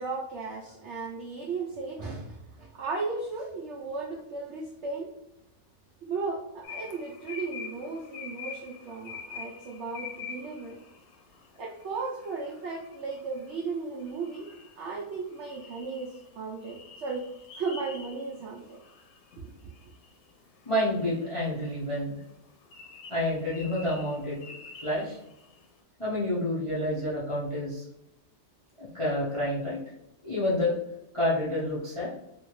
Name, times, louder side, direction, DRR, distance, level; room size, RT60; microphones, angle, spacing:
voice 1, 0.0-5.1 6.0-10.8 11.6-14.5 14.8-17.3 17.6-18.8 19.4-19.5, right 4 dB, 80° right, -2 dB, 0.6 m, -35 dB
sound 1, 6.6-25.7, left 6 dB, 75° left, 1.2 m, -47 dB
voice 2, 20.7-22.2 23.1-24.4 24.8-25.2 26.0-27.8 28.8-29.8 30.2-30.8 31.1-32.1, left 1 dB, 45° left, -7 dB, 0.4 m, -28 dB
2.9 x 2.7 x 3.0 m, 0.85 s
omnidirectional pair, 1.8 m